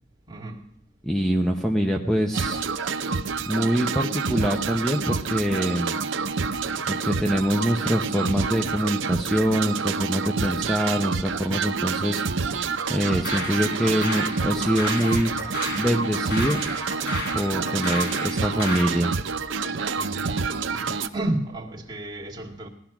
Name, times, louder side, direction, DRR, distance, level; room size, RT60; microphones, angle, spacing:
voice 1, 0.3-0.7 10.3-10.6 15.3-15.5 17.5-17.9 19.9-20.5 20.7-22.7, right 1 dB, 25° right, 2.1 m, -33 dB
voice 2, 1.0-2.6 3.5-6.0 6.9-12.5 12.9-15.3 15.8-16.6 17.3-19.1, equal, ahead, 0.8 m, -24 dB
sound 1, 2.3-21.1, right 5 dB, 75° right, 0.8 m, -28 dB
sound 2, 13.1-19.0, left 1 dB, 60° left, 5.4 m, -33 dB
18.0 x 12.0 x 6.0 m
head